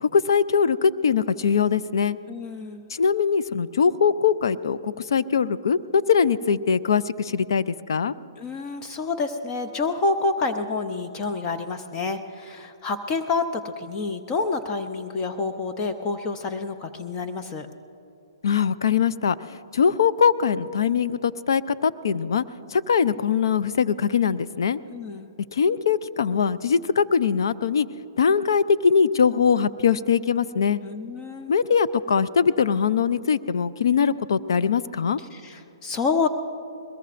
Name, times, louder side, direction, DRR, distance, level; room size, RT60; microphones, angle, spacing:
voice 1, 0.0-2.2 2.9-8.1 18.4-22.4 22.7-24.8 25.5-27.9 28.2-30.8 31.5-35.2, left 6 dB, 70° left, 13 dB, 0.5 m, -22 dB
voice 2, 2.3-2.8 8.4-17.7 24.9-25.3 30.8-31.5 35.3-36.3, left 3 dB, 25° left, 6 dB, 0.7 m, -28 dB
21.5 x 20.5 x 2.5 m, 2.6 s
hypercardioid pair, 140°, 2 cm